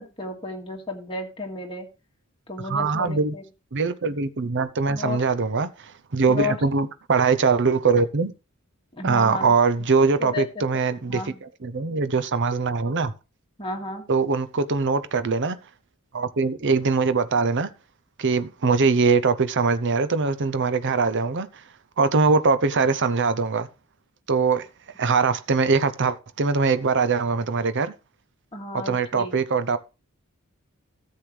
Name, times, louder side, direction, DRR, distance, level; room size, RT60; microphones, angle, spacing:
voice 1, 0.0-1.9 2.5-3.4 4.9-5.2 6.3-6.6 8.9-9.6 10.2-10.5 11.1-11.4 13.6-14.0 28.5-29.4, left 3 dB, 25° left, 2.1 m, -33 dB
voice 2, 2.7-3.3 3.7-8.3 9.0-13.1 14.1-15.6 16.1-17.7 18.2-21.6 22.0-23.7 24.3-24.7 25.0-27.9 28.9-29.8, right 4 dB, 55° right, 0.7 m, -22 dB
13.5 x 7.6 x 3.3 m
head